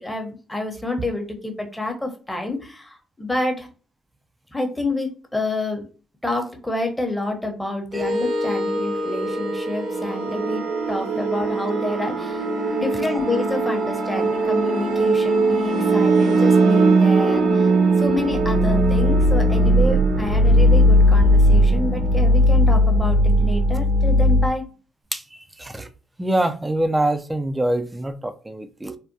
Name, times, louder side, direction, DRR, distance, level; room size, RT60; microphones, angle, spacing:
voice 1, 0.0-3.7 4.5-5.9 6.2-10.6 10.9-24.6, left 2 dB, 10° left, 0.9 m, -28 dB
sound 1, 7.9-24.5, right 1 dB, 75° right, 1.2 m, -18 dB
voice 2, 25.1-25.9 26.2-29.0, right 1 dB, 15° right, 0.4 m, -25 dB
3.4 x 2.2 x 2.7 m
supercardioid pair, 60°, 0 cm